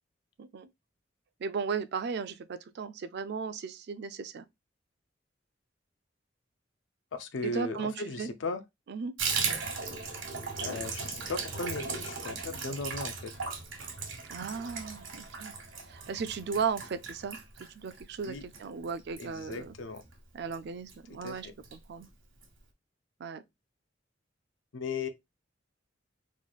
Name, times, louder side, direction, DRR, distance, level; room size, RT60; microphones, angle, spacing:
voice 1, 1.4-4.5 7.4-8.3 8.9-9.1 14.3-15.5 15.9-17.4 17.7-19.7 20.3-22.1 23.2-23.4, right 5 dB, 60° right, 0.4 m, -36 dB
voice 2, 7.1-8.6 10.6-13.3 18.3-18.4 19.2-20.0 21.2-21.5 24.7-25.1, left 3 dB, 75° left, 0.5 m, -37 dB
Water tap faucet / Bathtub (filling or washing), 9.2-20.1 20.4-20.6 20.9-21.0 21.3-21.8 22.0-22.1 22.4-22.5, right 5 dB, 80° right, 1.1 m, -37 dB
3.1 x 2.3 x 3.9 m
head